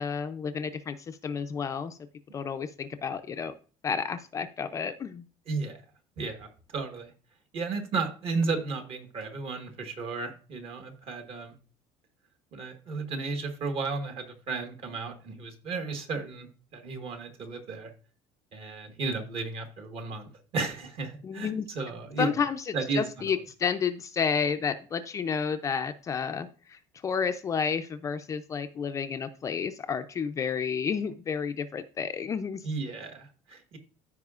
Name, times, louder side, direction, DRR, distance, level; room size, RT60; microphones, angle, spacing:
voice 1, 0.0-2.0 2.3-3.5 3.8-5.3 21.2-21.7 22.2-32.7, left 6 dB, 25° left, 8 dB, 0.4 m, -31 dB
voice 2, 5.5-5.8 6.2-7.1 7.5-11.5 12.5-17.9 18.5-22.3 22.7-23.0 32.6-33.8, right 3 dB, 45° right, 5 dB, 1.4 m, -34 dB
14.0 x 4.9 x 2.4 m, 0.38 s
cardioid pair, 160°, 13 cm